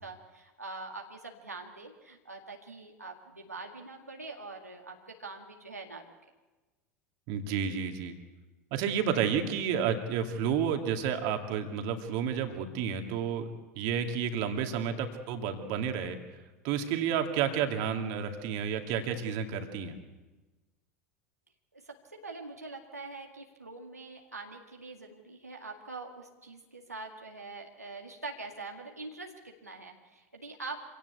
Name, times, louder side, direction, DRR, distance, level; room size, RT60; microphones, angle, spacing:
voice 1, 0.0-6.1 21.7-30.8, right 3 dB, 85° right, 1 dB, 2.0 m, -44 dB
voice 2, 7.3-8.1 8.7-16.2 16.6-19.9, right 7 dB, 50° right, 5 dB, 2.4 m, -31 dB
26.0 x 17.5 x 8.2 m, 1.2 s
figure-of-eight pair, 80°, 8 cm